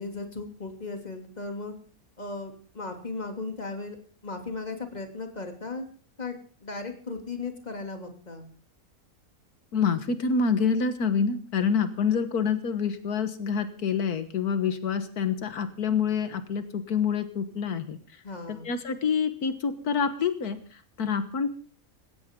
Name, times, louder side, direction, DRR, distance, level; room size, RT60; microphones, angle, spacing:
voice 1, 0.0-1.7 2.2-4.0 4.2-5.8 6.2-8.4 18.2-18.7, left 3 dB, 30° left, 4 dB, 2.9 m, -36 dB
voice 2, 9.7-18.0 18.5-21.5, left 6 dB, 85° left, 10 dB, 1.8 m, -27 dB
20.0 x 17.0 x 3.7 m, 0.40 s
omnidirectional pair, 1.6 m